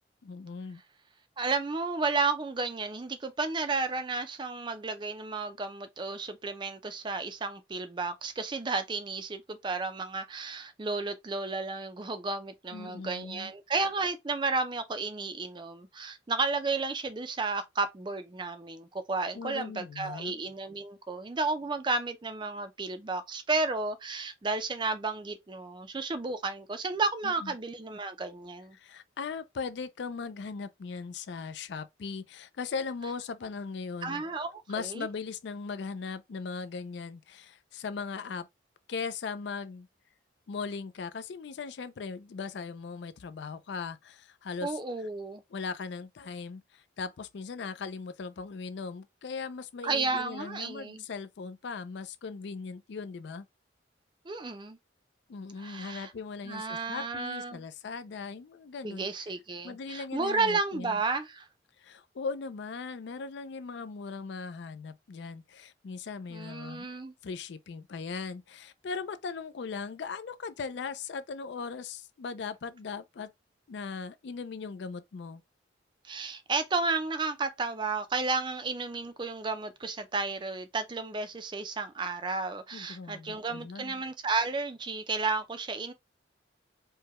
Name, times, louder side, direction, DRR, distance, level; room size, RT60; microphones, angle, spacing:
voice 1, 0.2-0.8 12.7-13.5 19.3-20.3 27.2-27.5 28.7-34.2 34.7-38.5 38.9-39.9 40.5-44.8 45.5-53.5 55.3-59.1 59.6-61.0 61.8-66.9 67.2-73.3 73.7-75.4 82.7-84.0, left 5 dB, 65° left, 0.4 m, -39 dB
voice 2, 1.4-28.8 34.0-35.1 44.6-45.4 49.8-51.0 54.3-54.8 55.6-56.1 56.4-57.6 58.8-61.5 66.3-67.1 76.0-85.9, right 3 dB, 25° right, 0.4 m, -32 dB
4.7 x 2.2 x 2.9 m
head